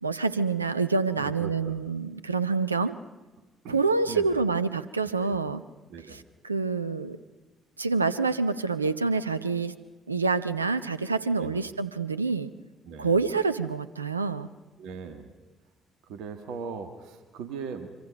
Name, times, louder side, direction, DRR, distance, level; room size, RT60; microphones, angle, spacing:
voice 1, 0.0-2.9 3.7-5.6 6.1-7.2 7.8-9.7 10.1-12.5 13.0-14.5, right 4 dB, 85° right, 13 dB, 0.7 m, -27 dB
voice 2, 1.2-1.8 3.6-4.4 5.2-5.4 5.9-6.2 11.3-11.6 12.9-13.2 14.8-15.3 16.0-17.9, right 6 dB, 65° right, 9 dB, 1.7 m, -39 dB
26.5 x 25.0 x 5.3 m, 1.2 s
figure-of-eight pair, 45°, 0 cm